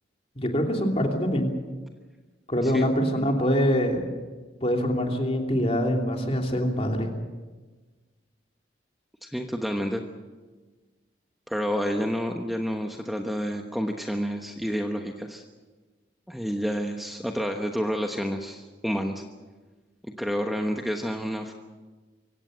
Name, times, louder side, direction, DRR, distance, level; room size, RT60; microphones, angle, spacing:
voice 1, 0.3-1.5 2.5-4.1 4.6-7.1, equal, 35° left, 2 dB, 3.0 m, -24 dB
voice 2, 9.2-10.0 11.5-15.4 16.3-19.2 20.2-21.5, equal, ahead, 3 dB, 1.1 m, -29 dB
24.0 x 17.0 x 8.1 m, 1.3 s
head